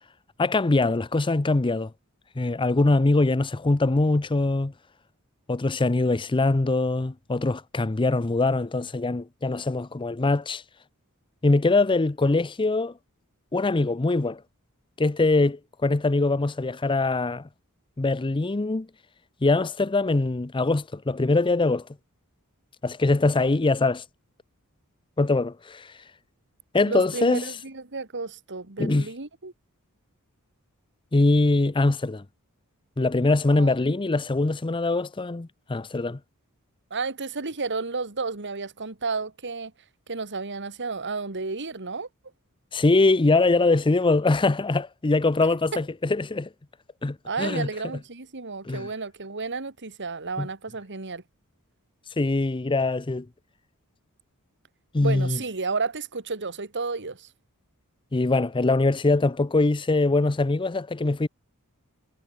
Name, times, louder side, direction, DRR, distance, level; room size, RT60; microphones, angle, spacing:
voice 1, 0.4-1.9 2.4-4.7 5.5-10.6 11.4-12.9 13.5-14.4 15.0-17.5 18.0-18.9 19.4-21.9 22.8-24.0 25.2-25.9 26.7-27.5 28.8-29.1 31.1-32.2 33.0-36.2 42.7-46.5 47.0-47.7 48.6-48.9 50.4-50.5 52.2-53.3 54.9-55.4 58.1-61.3, left 2 dB, 20° left, 0.6 m, -23 dB
voice 2, 26.8-29.5 33.6-33.9 36.9-39.7 40.1-42.1 47.2-51.2 55.0-57.3, right 4 dB, 55° right, 2.3 m, -32 dB
head